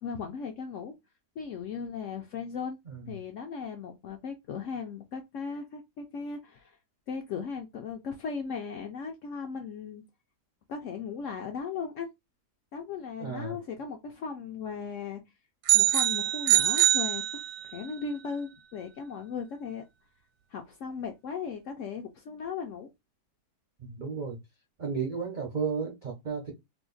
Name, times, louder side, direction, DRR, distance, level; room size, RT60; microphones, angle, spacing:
voice 1, 0.0-0.9 1.4-2.8 3.1-6.8 7.1-10.0 10.7-12.1 12.7-15.2 15.7-19.8 20.5-22.9, left 6 dB, 70° left, 0.7 m, -37 dB
voice 2, 13.2-13.6 23.8-24.4 24.8-26.5, right 5 dB, 65° right, 0.4 m, -33 dB
sound 1, 15.7-17.9, right 13 dB, 85° right, 1.2 m, -24 dB
2.8 x 2.4 x 3.8 m
omnidirectional pair, 1.8 m